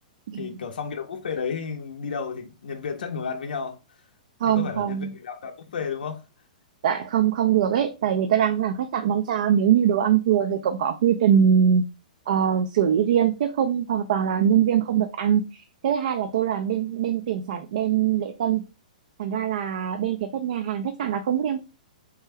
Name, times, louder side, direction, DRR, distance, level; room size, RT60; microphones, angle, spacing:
voice 1, 0.4-3.8 4.5-6.2, left 6 dB, 90° left, 0.5 m, -32 dB
voice 2, 4.4-5.1 6.8-11.8 12.3-18.6 19.2-21.6, right 9 dB, 60° right, 0.3 m, -22 dB
3.3 x 2.2 x 3.2 m
hypercardioid pair, 155°, 5 cm